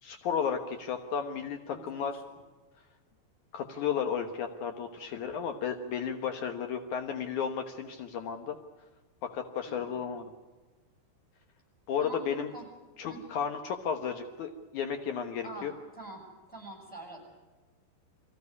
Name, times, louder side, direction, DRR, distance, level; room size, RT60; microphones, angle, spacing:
voice 1, 0.0-2.2 3.5-8.6 9.2-10.3 11.9-12.5 13.0-15.7, left 7 dB, 80° left, 5 dB, 1.7 m, -33 dB
voice 2, 1.7-2.4 9.6-10.0 12.0-12.2 12.5-12.7 13.1-13.2 15.4-16.2 16.5-17.3, right 1 dB, ahead, 0 dB, 6.7 m, -46 dB
24.5 x 16.0 x 9.6 m, 1.3 s
omnidirectional pair, 5.3 m